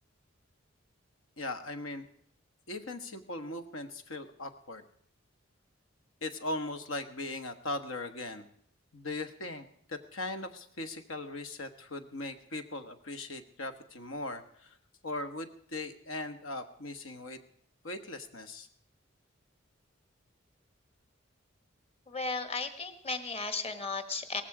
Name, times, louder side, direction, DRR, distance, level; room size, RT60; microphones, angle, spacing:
voice 1, 1.4-2.1 2.7-4.8 6.2-8.5 8.9-14.8 15.0-17.4 17.8-18.7, left 2 dB, 90° left, 8 dB, 1.5 m, -39 dB
voice 2, 22.1-24.4, left 3 dB, 30° left, 9 dB, 1.5 m, -35 dB
18.0 x 15.5 x 4.9 m, 0.64 s
head